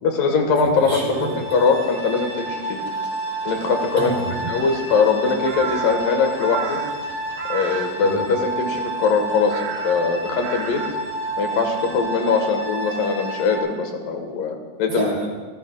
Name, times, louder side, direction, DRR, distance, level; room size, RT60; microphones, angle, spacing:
voice 1, 0.0-1.0 1.5-2.8 3.5-4.1 4.5-6.8 7.5-10.8 11.4-15.1, left 5 dB, 75° left, 4 dB, 3.0 m, -21 dB
voice 2, 0.6-1.4 4.0-4.6 8.0-8.3 14.9-15.3, right 2 dB, 40° right, -3 dB, 3.6 m, -28 dB
sound 1, 0.8-13.6, right 1 dB, 30° left, 3.1 m, -30 dB
Crow, 3.5-12.0, right 7 dB, 70° right, 2.0 m, -36 dB
26.5 x 15.5 x 2.3 m, 1.3 s
omnidirectional pair, 4.0 m